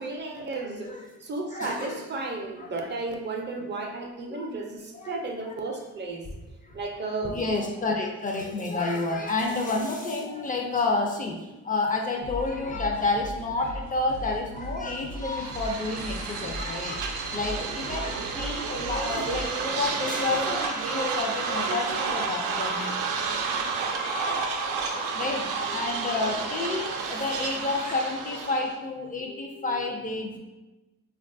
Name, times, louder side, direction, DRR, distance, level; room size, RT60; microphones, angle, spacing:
voice 1, 0.0-0.9 1.2-6.3 6.7-7.4, right 3 dB, 35° right, 2 dB, 0.5 m, -33 dB
voice 2, 0.6-1.1 1.5-2.0 2.6-2.8 3.6-3.7 4.3-4.5 4.9-5.2 5.4-5.5 6.6-6.8 7.2-30.4, left 3 dB, 30° left, 1 dB, 0.4 m, -30 dB
sound 1, 12.2-19.6, equal, 80° left, 0.8 m, -39 dB
sound 2, 15.2-28.8, right 5 dB, 90° right, 0.5 m, -31 dB
3.4 x 2.3 x 2.5 m, 1.1 s
cardioid pair, 90°, 30 cm